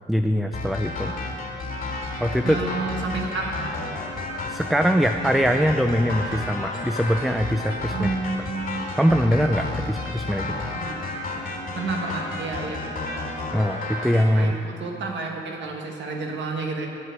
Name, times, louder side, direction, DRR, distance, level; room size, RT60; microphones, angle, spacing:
voice 1, 0.1-1.1 2.2-2.6 4.5-8.2 9.0-10.6 13.5-14.6, equal, ahead, 6 dB, 0.4 m, -22 dB
sound 1, 0.5-14.2, left 2 dB, 45° left, 2.9 m, -32 dB
voice 2, 2.4-3.6 7.9-8.8 10.7-11.0 11.7-12.8 14.3-16.9, right 3 dB, 65° right, 1 dB, 1.4 m, -30 dB
sound 2, 3.4-3.5 4.1-4.5 5.1-5.5 6.1-6.5 7.1-7.5 8.1-8.5, left 2 dB, 15° left, 1.0 m, -42 dB
8.0 x 7.4 x 8.1 m, 2.7 s
cardioid pair, 90°, 20 cm